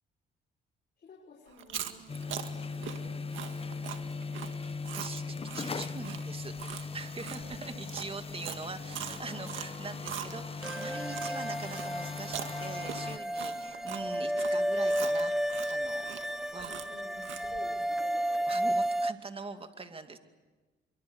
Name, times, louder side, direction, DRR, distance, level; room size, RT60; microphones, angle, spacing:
voice 1, 1.0-4.1 7.2-7.8 8.8-9.5 13.3-14.0 16.3-18.7, left 4 dB, 50° left, -2 dB, 6.0 m, -53 dB
Chewing mastication, 1.5-11.3 11.7-17.6, right 10 dB, 80° right, 1.9 m, -42 dB
Old Fridge, 2.1-13.2, left 4 dB, 30° left, 1.1 m, -39 dB
voice 2, 4.4-15.3 15.7-16.1 16.5-16.7 18.5-20.2, right 4 dB, 30° right, 7 dB, 2.5 m, -43 dB
sound 1, 10.6-19.1, equal, ahead, 1.0 m, -32 dB
25.5 x 24.0 x 8.2 m, 1.3 s
cardioid pair, 90°, 20 cm